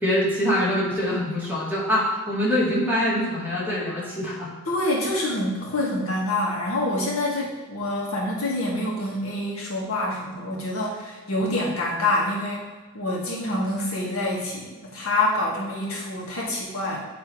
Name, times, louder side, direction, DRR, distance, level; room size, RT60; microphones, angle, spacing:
voice 1, 0.0-4.5, equal, 10° right, -7 dB, 2.0 m, -24 dB
voice 2, 4.7-12.6 12.9-17.0, left 1 dB, 85° left, -3 dB, 1.8 m, -26 dB
8.9 x 3.4 x 4.7 m, 1.3 s
head